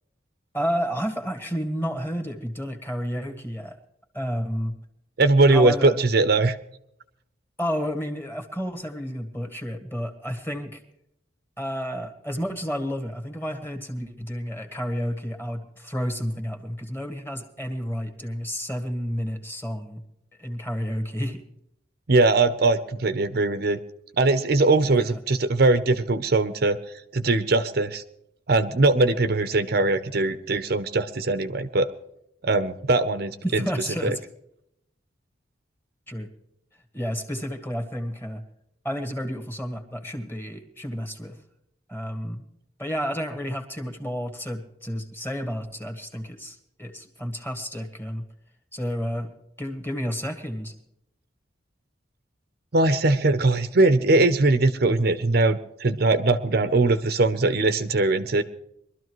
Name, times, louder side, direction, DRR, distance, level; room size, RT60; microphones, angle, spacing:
voice 1, 0.5-3.8 4.1-4.7 5.5-6.0 7.6-10.8 11.6-20.0 20.4-21.4 24.9-25.2 33.4-34.2 36.1-36.3 36.9-38.4 38.8-41.4 41.9-42.4 42.8-48.2 48.7-49.3 49.6-50.7, equal, 10° left, 4 dB, 1.5 m, -31 dB
voice 2, 5.2-6.6 22.1-23.8 24.2-26.8 27.1-28.0 28.5-31.9 32.4-33.7 34.0-34.1 52.7-58.4, right 2 dB, 50° right, 11 dB, 0.6 m, -21 dB
23.0 x 13.0 x 3.1 m, 0.77 s
head